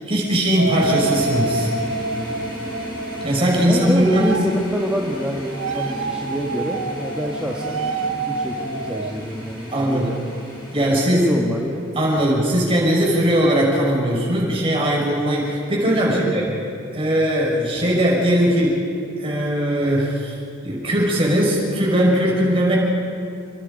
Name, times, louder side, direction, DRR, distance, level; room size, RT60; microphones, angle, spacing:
voice 1, 0.1-1.7 3.2-4.3 9.7-10.1 10.7-11.2 12.0-16.4 16.9-18.8 19.2-22.8, equal, 25° right, -3 dB, 5.8 m, -19 dB
sound 1, 0.6-4.8 5.5-9.1, right 3 dB, 85° right, 1.0 m, -28 dB
sound 2, 0.7-12.0, equal, 20° left, 5.2 m, -34 dB
voice 2, 3.6-10.2 10.8-12.2 16.0-16.7, equal, 5° right, -2 dB, 1.4 m, -26 dB
28.5 x 24.0 x 5.3 m, 2.5 s
head